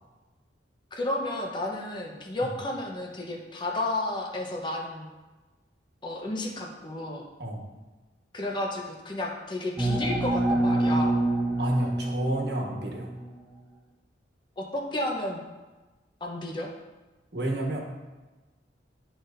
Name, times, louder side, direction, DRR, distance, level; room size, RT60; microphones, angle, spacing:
voice 1, 0.9-5.1 6.0-7.2 8.3-11.2 14.6-15.4 16.2-16.7, left 1 dB, 25° left, 0 dB, 0.9 m, -32 dB
sound 1, 9.8-13.3, right 1 dB, 5° right, 0.9 m, -26 dB
voice 2, 11.6-13.1 17.3-17.8, right 1 dB, 65° right, 0 dB, 1.3 m, -31 dB
12.0 x 4.1 x 2.6 m, 1.2 s
head